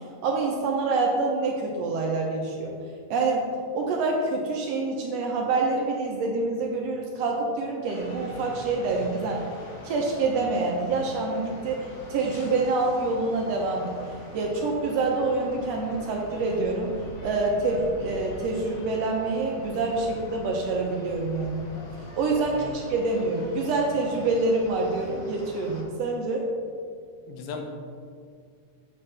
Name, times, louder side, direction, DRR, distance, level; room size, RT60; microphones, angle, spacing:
voice 1, 0.2-2.7 3.1-3.5 3.7-9.5 9.8-13.9 14.3-16.9 17.2-21.6 22.2-26.5, right 3 dB, 75° right, 0 dB, 1.6 m, -26 dB
sound 1, 7.9-25.8, left 1 dB, 70° left, 1.0 m, -43 dB
voice 2, 27.3-27.6, left 5 dB, 85° left, 3 dB, 2.1 m, -37 dB
7.4 x 6.0 x 3.2 m, 2.1 s
omnidirectional pair, 3.4 m